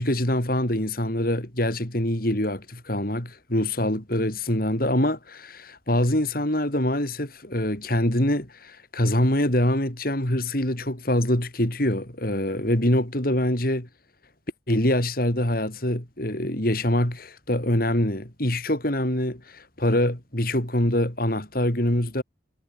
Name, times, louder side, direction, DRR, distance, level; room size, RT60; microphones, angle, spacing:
voice 1, 0.0-13.9 14.7-22.2, left 1 dB, 50° left, 4.1 m, -24 dB
head